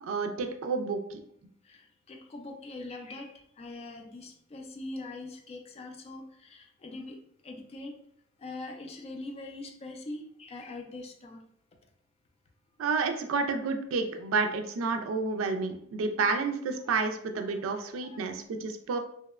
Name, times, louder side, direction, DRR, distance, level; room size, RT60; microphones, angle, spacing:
voice 1, 0.0-1.2 12.8-19.0, right 4 dB, 85° right, 6 dB, 0.3 m, -30 dB
voice 2, 1.6-7.2 7.4-8.0 8.4-11.4 16.8-17.0 17.5-18.3, left 2 dB, 30° left, 3 dB, 0.3 m, -43 dB
2.8 x 2.0 x 2.3 m, 0.68 s
head